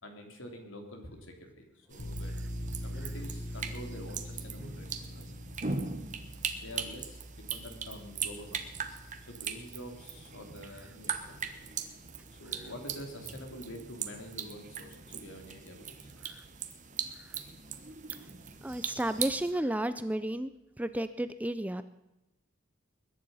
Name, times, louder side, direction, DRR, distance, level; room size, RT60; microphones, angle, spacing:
voice 1, 0.0-2.4 2.8-5.3 6.2-8.6 8.9-11.5 12.0-16.1, equal, 70° left, 4 dB, 3.1 m, -47 dB
sound 1, 1.9-19.5, right 6 dB, 35° right, 1.2 m, -40 dB
sound 2, 2.0-13.3, equal, 40° left, 6.7 m, -44 dB
voice 2, 18.6-20.5 20.8-21.8, right 1 dB, 5° right, 12 dB, 0.4 m, -32 dB
21.5 x 10.5 x 5.5 m, 0.95 s
head